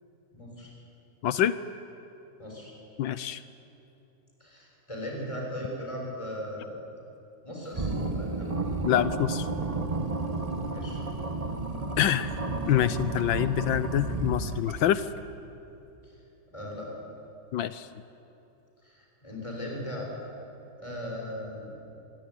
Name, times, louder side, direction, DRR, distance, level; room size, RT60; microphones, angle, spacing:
voice 1, 0.3-0.7 2.4-2.7 4.4-6.8 7.4-8.5 10.7-11.0 16.0-16.1 16.5-16.9 18.8-20.1 20.8-21.8, equal, 15° left, -2 dB, 7.1 m, -38 dB
voice 2, 1.2-1.5 3.0-3.4 8.8-9.5 12.0-12.3 12.7-15.1 17.5-17.9, left 11 dB, 80° left, 13 dB, 1.5 m, -26 dB
sound 1, 7.7-15.0, right 3 dB, 20° right, 1.3 m, -32 dB
26.5 x 22.5 x 9.8 m, 2.9 s
omnidirectional pair, 2.1 m